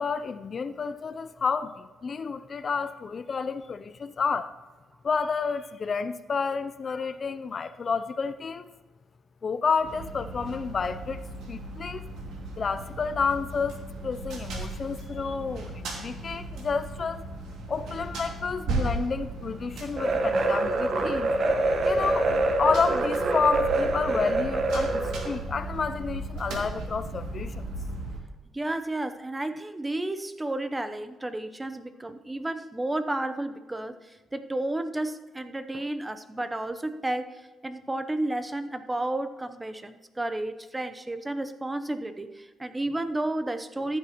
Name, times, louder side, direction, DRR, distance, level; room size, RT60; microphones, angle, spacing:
voice 1, 0.0-4.5 5.0-8.7 9.4-11.2 11.5-12.1 12.6-17.3 17.7-21.3 21.8-22.3 22.6-27.6, left 5 dB, 45° left, 12 dB, 0.5 m, -30 dB
sound 1, 9.8-28.2, right 2 dB, 80° right, 2.3 m, -36 dB
sound 2, 20.0-25.4, right 2 dB, 50° right, 1.1 m, -25 dB
voice 2, 28.5-44.0, right 1 dB, 15° right, 11 dB, 0.7 m, -32 dB
14.5 x 9.6 x 3.0 m, 1.3 s
cardioid pair, 90°, 0 cm